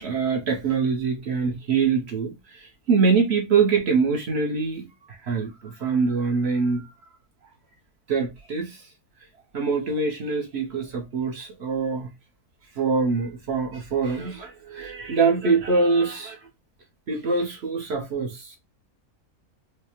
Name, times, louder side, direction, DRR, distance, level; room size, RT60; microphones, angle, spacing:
voice 1, 0.0-6.9 8.1-8.9 9.5-12.1 12.7-16.5 17.1-18.6, right 4 dB, 55° right, 0.8 m, -24 dB
4.8 x 2.1 x 2.9 m
omnidirectional pair, 1.6 m